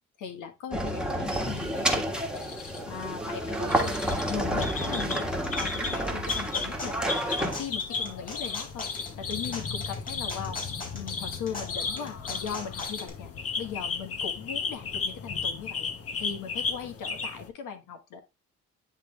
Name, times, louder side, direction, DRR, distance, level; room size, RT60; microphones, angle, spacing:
voice 1, 0.2-2.2 2.9-4.0 4.3-5.3 5.6-7.1 7.4-8.8 9.2-10.6 10.9-15.9 16.2-18.2, left 7 dB, 80° left, 6 dB, 1.5 m, -38 dB
sound 1, 0.7-7.6, right 1 dB, 5° right, 1.5 m, -30 dB
sound 2, 1.5-17.5, left 5 dB, 50° left, 1.2 m, -35 dB
sound 3, 5.3-13.1, left 3 dB, 30° left, 3.6 m, -41 dB
9.8 x 3.4 x 3.2 m, 0.25 s
cardioid pair, 90°, 30 cm